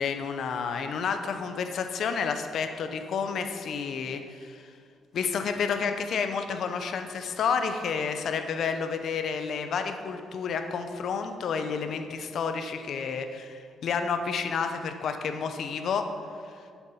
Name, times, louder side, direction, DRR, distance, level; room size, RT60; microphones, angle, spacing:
voice 1, 0.0-4.7 5.1-16.1, left 6 dB, 65° left, 7 dB, 0.9 m, -30 dB
10.5 x 7.2 x 5.7 m, 2.2 s
cardioid pair, 90°, 0 cm